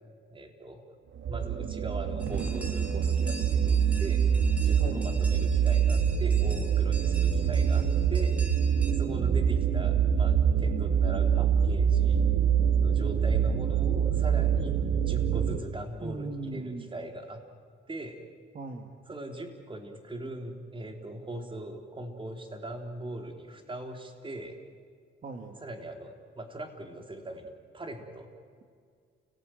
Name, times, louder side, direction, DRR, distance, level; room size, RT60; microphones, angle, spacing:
voice 1, 0.3-0.9 1.3-4.2 4.6-8.6 8.8-12.2 12.8-17.4 17.9-18.2 19.1-24.6 25.6-28.3, right 1 dB, 25° right, 4 dB, 3.9 m, -40 dB
sound 1, 1.2-15.6, right 7 dB, 70° right, 1.8 m, -25 dB
sound 2, 2.2-8.9, equal, 5° right, 3.5 m, -45 dB
voice 2, 7.2-7.9 16.0-16.9 18.5-18.9 25.2-25.6, right 3 dB, 45° right, 4 dB, 2.2 m, -39 dB
29.5 x 18.0 x 9.3 m, 2.1 s
cardioid pair, 90°, 20 cm